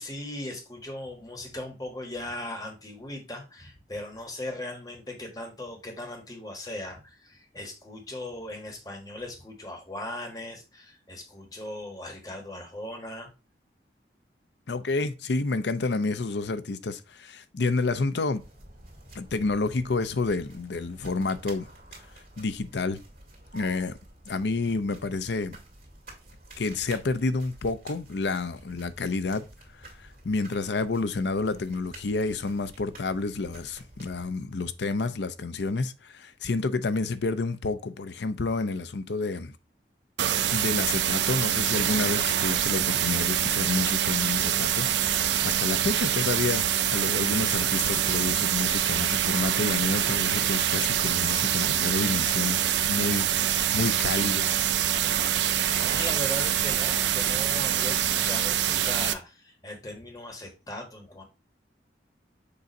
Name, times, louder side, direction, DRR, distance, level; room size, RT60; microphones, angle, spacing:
voice 1, 0.0-13.3 55.8-61.2, left 1 dB, 20° left, 1.4 m, -38 dB
voice 2, 14.7-18.4 19.1-21.7 22.4-23.0 23.5-23.9 24.3-25.6 26.6-29.5 29.8-39.5 40.5-52.6 52.9-53.3 53.5-54.5, left 3 dB, 85° left, 0.6 m, -29 dB
sound 1, 18.4-34.3, right 1 dB, 50° right, 2.4 m, -50 dB
sound 2, 40.2-59.1, right 10 dB, 90° right, 0.5 m, -25 dB
6.8 x 2.7 x 5.1 m
head